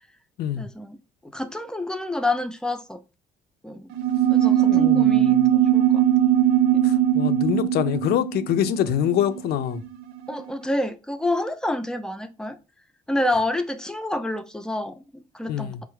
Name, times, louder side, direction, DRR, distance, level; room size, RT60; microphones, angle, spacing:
voice 1, 0.6-1.0 1.2-3.0 3.6-3.9 4.3-6.0 6.8-6.9 10.3-12.6 13.1-15.7, left 1 dB, 5° left, 0.4 m, -28 dB
sound 1, 3.9-9.9, right 11 dB, 85° right, 0.4 m, -20 dB
voice 2, 4.6-5.5 6.8-9.8 15.5-15.8, left 10 dB, 70° left, 0.4 m, -25 dB
4.6 x 2.0 x 3.0 m
cardioid pair, 110°, 17 cm